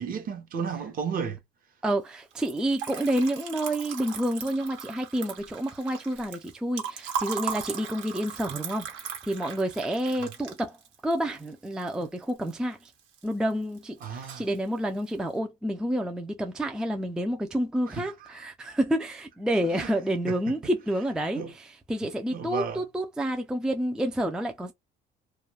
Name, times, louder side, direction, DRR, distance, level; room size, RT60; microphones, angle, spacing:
voice 1, 0.0-1.4 14.0-14.4 18.0-18.1 19.6-19.9 20.3-20.5 21.4-21.5 22.3-22.8, right 6 dB, 45° right, 0.9 m, -33 dB
voice 2, 1.8-10.8 11.0-12.9 13.2-24.7, right 1 dB, 5° right, 0.4 m, -29 dB
Liquid, 2.3-12.5 12.8-13.5 13.8-14.6, right 7 dB, 80° right, 1.2 m, -38 dB
2.4 x 2.1 x 3.1 m
cardioid pair, 115°, 20 cm